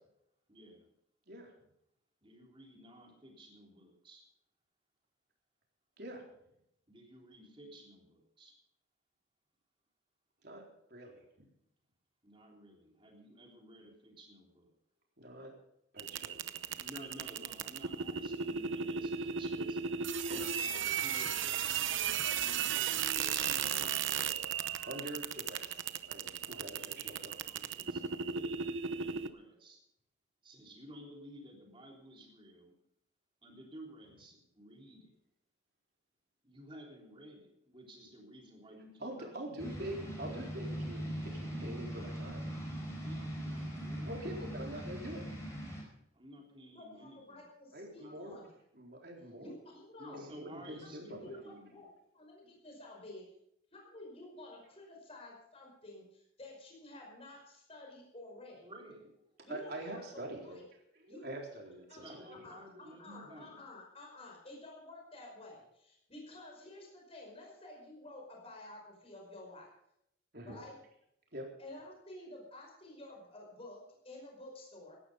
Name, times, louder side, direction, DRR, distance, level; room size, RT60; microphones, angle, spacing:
voice 1, 0.5-0.9 2.2-4.2 6.9-8.5 12.2-14.7 16.8-20.1 20.6-21.7 22.4-24.5 26.5-29.8 30.4-32.7 33.4-35.1 36.4-39.3 43.0-44.1 46.1-47.4 47.9-48.2 50.0-51.8 58.6-59.2 62.0-63.7, right 1 dB, 25° right, 0 dB, 3.5 m, -54 dB
voice 2, 10.9-11.5 15.2-15.5 15.9-16.4 20.2-20.4 24.8-27.3 39.0-42.4 44.1-45.2 47.7-48.3 48.7-49.5 50.1-51.3 59.5-60.6 61.0-62.1 70.3-70.6 71.3-71.5, right 1 dB, 55° right, 0 dB, 4.0 m, -45 dB
sound 1, 16.0-29.3, right 7 dB, 75° right, 0.8 m, -35 dB
sound 2, 39.6-45.8, right 1 dB, 15° left, 5.0 m, -40 dB
voice 3, 46.7-48.5 49.4-50.2 50.8-51.9 52.1-53.2 53.7-58.7 59.4-60.6 61.1-61.3 61.9-69.7 70.4-70.8 71.6-75.0, left 2 dB, 30° left, 0 dB, 5.2 m, -51 dB
17.0 x 12.0 x 5.4 m, 0.76 s
head